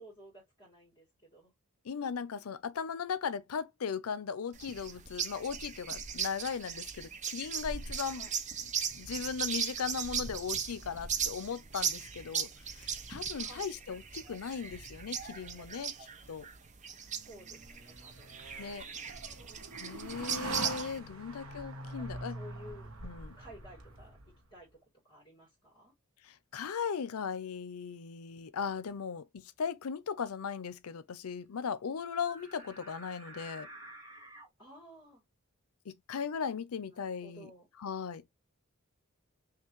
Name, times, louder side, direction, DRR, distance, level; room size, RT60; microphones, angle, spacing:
voice 1, 0.0-1.5 2.3-2.5 8.1-8.3 13.4-13.7 17.2-18.5 22.0-22.9 23.4-24.2 24.5-24.7 25.0-25.9 34.6-35.2 36.9-37.7, equal, 25° left, 2.2 m, -54 dB
voice 2, 1.8-8.3 8.9-15.9 16.3-16.5 18.6-18.8 19.8-22.4 23.0-23.4 26.2-33.7 35.9-37.5 37.8-38.3, left 6 dB, 90° left, 0.5 m, -38 dB
sound 1, 4.5-21.0, right 7 dB, 35° right, 0.7 m, -38 dB
sound 2, 17.1-24.5, right 2 dB, 75° right, 1.1 m, -44 dB
sound 3, 32.2-34.5, right 1 dB, 15° right, 1.7 m, -50 dB
5.9 x 2.5 x 3.0 m
head